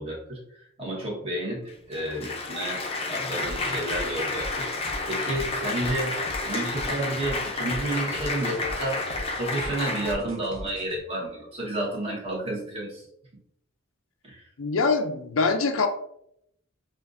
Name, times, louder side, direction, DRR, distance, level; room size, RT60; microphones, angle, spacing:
voice 1, 0.0-6.2 6.4-9.1 9.4-13.0 14.2-14.4, right 1 dB, 30° right, -4 dB, 1.3 m, -31 dB
Applause, 1.7-10.1, left 3 dB, 30° left, 0.6 m, -31 dB
sound 1, 3.4-11.0, equal, 85° right, 0.8 m, -41 dB
voice 2, 14.6-15.9, left 4 dB, 85° left, 6 dB, 0.5 m, -24 dB
5.7 x 2.5 x 2.6 m, 0.73 s
head